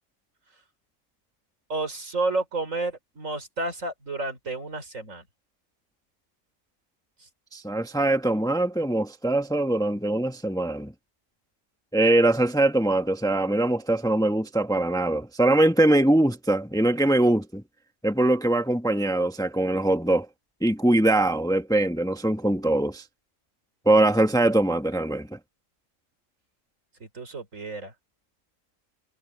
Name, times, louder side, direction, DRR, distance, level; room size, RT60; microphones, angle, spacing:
voice 1, 1.7-5.2 27.1-27.9, right 2 dB, 85° right, 4.4 m, -30 dB
voice 2, 7.5-10.9 11.9-17.6 18.0-20.3 20.6-23.0 23.8-25.4, right 1 dB, 5° left, 1.0 m, -22 dB
omnidirectional pair, 1.3 m